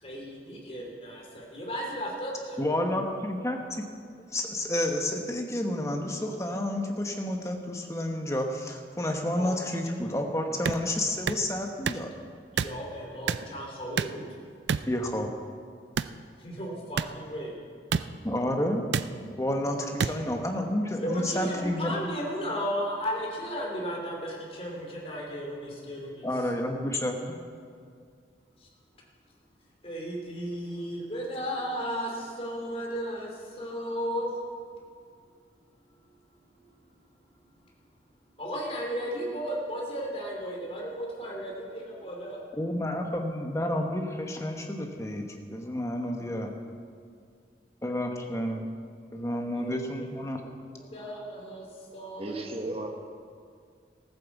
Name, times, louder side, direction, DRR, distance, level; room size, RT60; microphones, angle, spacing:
voice 1, 0.0-2.6 9.3-9.6 9.8-10.1 12.5-14.3 16.4-17.6 19.2-19.3 21.0-26.3 28.6-28.7 29.8-34.3 38.4-42.4 49.5-50.1 50.9-51.7 51.9-52.6, equal, 30° left, -2 dB, 2.9 m, -35 dB
voice 2, 2.6-3.8 4.3-12.1 14.9-15.3 18.2-18.9 19.4-21.9 26.2-27.2 42.5-46.5 47.8-48.7 49.1-50.4, left 1 dB, 15° left, 3 dB, 1.2 m, -30 dB
sound 1, 10.7-10.8 11.3-11.4 11.8-12.0 12.6-12.8 13.3-13.5 14.0-14.2 14.7-14.9 16.0-16.2 17.0-17.1 17.9-18.0 18.9-19.1 20.0-20.1, right 6 dB, 75° right, 0.4 m, -27 dB
voice 3, 52.2-52.9, right 2 dB, 35° right, 3 dB, 1.3 m, -34 dB
15.0 x 9.3 x 7.2 m, 2.2 s
head